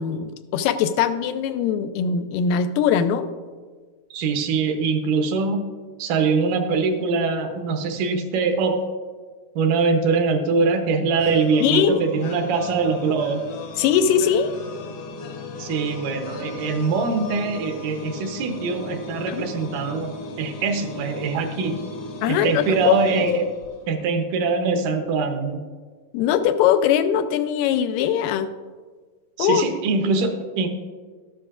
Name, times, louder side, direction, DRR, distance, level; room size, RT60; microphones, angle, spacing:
voice 1, 0.0-3.3 11.6-12.0 13.8-14.5 19.3-19.5 22.2-22.9 23.3-23.4 26.1-28.5 29.4-29.7, left 8 dB, 90° left, 10 dB, 2.2 m, -21 dB
voice 2, 4.1-5.7 6.0-8.8 9.6-13.4 15.6-21.8 22.3-23.5 23.9-25.6 29.4-30.7, right 4 dB, 75° right, 6 dB, 2.3 m, -23 dB
sound 1, 11.2-24.1, left 2 dB, 65° left, 1.6 m, -36 dB
12.5 x 10.0 x 2.4 m, 1.5 s
omnidirectional pair, 3.8 m